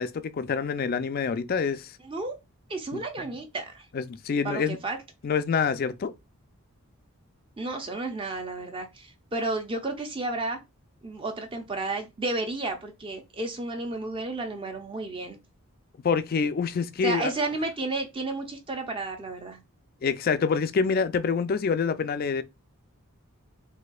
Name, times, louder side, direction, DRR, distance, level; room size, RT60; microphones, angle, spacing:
voice 1, 0.0-1.9 2.9-3.3 3.9-4.8 5.2-6.1 16.0-17.3 20.0-22.4, left 5 dB, 40° left, 0.3 m, -26 dB
voice 2, 2.0-2.4 2.7-3.9 4.4-5.0 7.6-10.6 11.0-15.4 17.0-19.6, right 2 dB, 25° right, 0.5 m, -32 dB
4.1 x 2.7 x 2.3 m
head